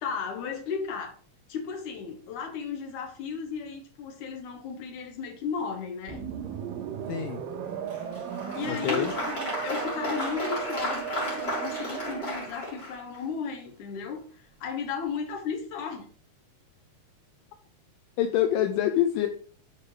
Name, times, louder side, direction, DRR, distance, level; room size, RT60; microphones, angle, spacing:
voice 1, 0.0-1.1 1.5-6.2 8.6-16.1, left 6 dB, 65° left, 3 dB, 2.9 m, -35 dB
sound 1, 6.1-12.6, right 9 dB, 85° right, 2.7 m, -36 dB
voice 2, 7.1-7.4 8.7-9.1 18.2-19.3, left 11 dB, 85° left, 5 dB, 2.4 m, -26 dB
Applause, 7.9-13.2, left 1 dB, 30° left, 3.6 m, -34 dB
8.6 x 4.8 x 5.0 m, 0.43 s
omnidirectional pair, 3.9 m